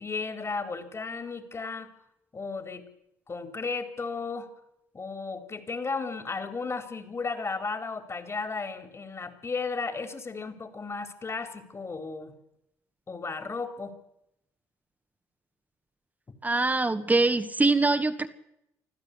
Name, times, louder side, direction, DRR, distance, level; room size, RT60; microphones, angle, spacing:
voice 1, 0.0-1.9 2.3-2.9 3.3-4.5 4.9-12.3 13.1-14.0, left 4 dB, 35° left, 8 dB, 4.3 m, -34 dB
voice 2, 16.4-18.3, right 3 dB, 20° right, 7 dB, 2.0 m, -23 dB
25.5 x 15.0 x 8.5 m, 0.81 s
hypercardioid pair, 55°, 8 cm